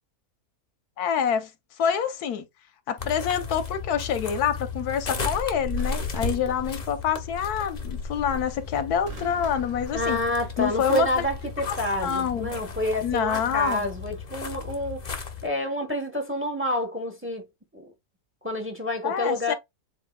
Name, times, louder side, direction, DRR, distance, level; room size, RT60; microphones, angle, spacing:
voice 1, 1.0-1.5 1.8-2.5 2.9-10.2 10.6-11.2 11.7-11.8 12.0-12.5 13.0-13.9 19.0-19.5, left 8 dB, 85° left, 1.3 m, -26 dB
sound 1, 1.9-2.2 5.8-7.2 9.1-10.7 11.9-12.2, right 2 dB, 25° right, 1.4 m, -46 dB
sound 2, 3.0-15.5, left 4 dB, 35° left, 0.8 m, -34 dB
voice 2, 9.9-17.5 17.7-17.9 18.4-19.5, left 1 dB, 10° right, 1.0 m, -28 dB
7.7 x 3.0 x 2.3 m
omnidirectional pair, 1.6 m